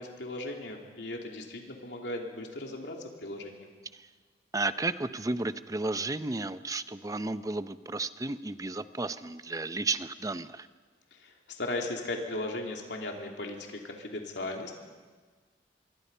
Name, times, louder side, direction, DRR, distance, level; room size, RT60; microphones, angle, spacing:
voice 1, 0.0-3.7 11.1-14.7, left 2 dB, 85° left, 1 dB, 3.1 m, -37 dB
voice 2, 4.5-10.7, right 3 dB, 20° right, 12 dB, 0.6 m, -33 dB
25.0 x 24.5 x 5.6 m, 1.5 s
head